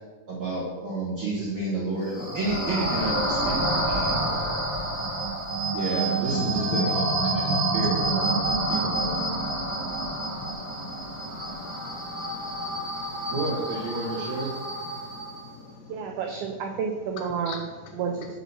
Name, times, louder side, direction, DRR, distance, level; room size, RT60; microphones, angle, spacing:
voice 1, 0.3-4.5 5.7-9.2 13.3-14.5, right 2 dB, 65° right, -8 dB, 1.3 m, -31 dB
sound 1, 2.0-15.4, right 2 dB, 30° right, 1.8 m, -28 dB
voice 2, 6.3-6.8 7.2-7.3 8.5-13.3 15.0-15.6 17.5-17.6, left 5 dB, 80° left, 2 dB, 2.1 m, -40 dB
voice 3, 15.9-18.4, right 6 dB, 85° right, 2 dB, 1.7 m, -31 dB
6.0 x 4.1 x 5.5 m, 1.4 s
omnidirectional pair, 4.1 m